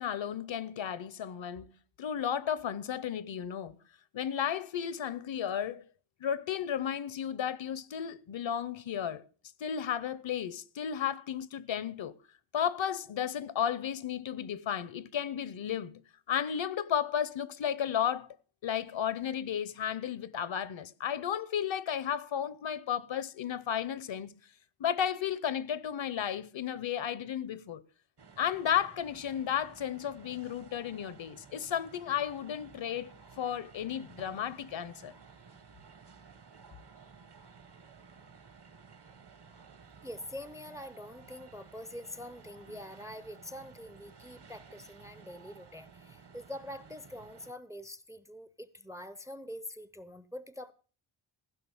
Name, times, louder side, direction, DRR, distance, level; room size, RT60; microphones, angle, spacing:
voice 1, 0.0-1.6 2.0-3.8 4.1-5.8 6.2-9.2 9.6-12.2 12.5-16.0 16.3-18.4 18.6-24.3 24.8-27.8 28.4-35.1, left 9 dB, 65° left, 0.8 m, -33 dB
sound 1, 28.2-47.5, right 5 dB, 55° right, 1.3 m, -55 dB
voice 2, 40.0-50.7, left 1 dB, 5° right, 0.5 m, -45 dB
15.5 x 5.8 x 7.2 m
wide cardioid pair, 140°, 50 cm